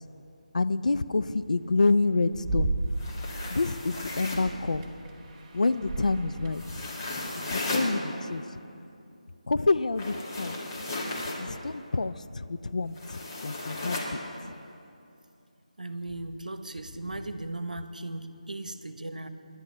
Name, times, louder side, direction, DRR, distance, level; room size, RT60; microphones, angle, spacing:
voice 1, 0.5-2.7 3.5-4.9 5.5-6.6 7.5-8.4 9.5-10.5 11.4-13.0 13.4-14.2, left 3 dB, 70° left, 12 dB, 0.5 m, -27 dB
sound 1, 1.3-3.3 4.1-7.1, right 2 dB, 20° right, 1.2 m, -34 dB
sound 2, 2.9-4.5 6.5-7.9 9.9-11.4 13.0-14.1, left 2 dB, 30° left, 2.2 m, -35 dB
voice 2, 15.8-19.3, right 2 dB, 80° right, 10 dB, 0.9 m, -37 dB
25.5 x 11.0 x 3.2 m, 2.6 s
figure-of-eight pair, 160°, 4 cm